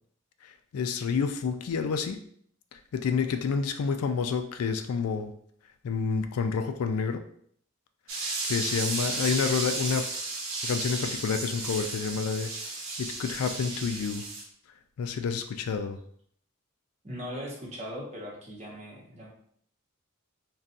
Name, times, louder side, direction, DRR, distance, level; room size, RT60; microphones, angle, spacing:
voice 1, 0.4-2.2 2.7-5.3 5.8-7.2 8.1-10.1 10.6-12.5 13.0-14.3 15.0-16.0, left 5 dB, 80° left, 8 dB, 0.3 m, -29 dB
sound 1, 8.1-14.4, right 3 dB, 60° right, 0.8 m, -33 dB
voice 2, 17.0-19.3, equal, 30° right, -3 dB, 0.8 m, -39 dB
4.0 x 2.2 x 2.5 m, 0.64 s
head